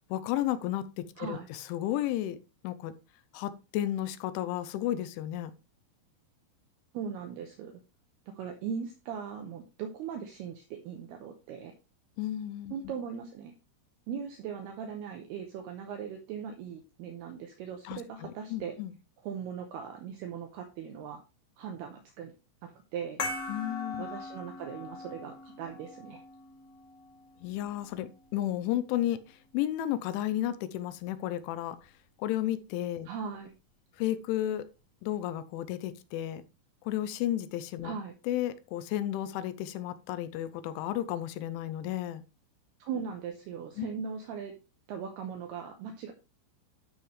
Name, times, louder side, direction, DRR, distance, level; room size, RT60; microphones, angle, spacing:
voice 1, 0.1-2.4 2.6-2.9 3.3-5.5 12.2-12.7 17.8-18.9 23.5-24.1 27.4-31.8 32.2-33.1 34.0-34.6 35.0-36.4 36.9-37.9 38.2-42.2 43.8-43.9, left 13 dB, 80° left, 3.0 m, -33 dB
voice 2, 1.2-1.5 6.9-7.8 8.4-11.7 12.7-13.5 14.1-18.8 19.2-21.2 21.6-22.3 22.6-23.2 24.0-26.2 33.1-33.5 37.8-38.1 42.8-44.5 44.9-46.1, right 7 dB, 80° right, 2.4 m, -39 dB
sound 1, 23.2-28.3, left 3 dB, 40° left, 2.6 m, -41 dB
13.0 x 5.6 x 3.1 m
omnidirectional pair, 5.7 m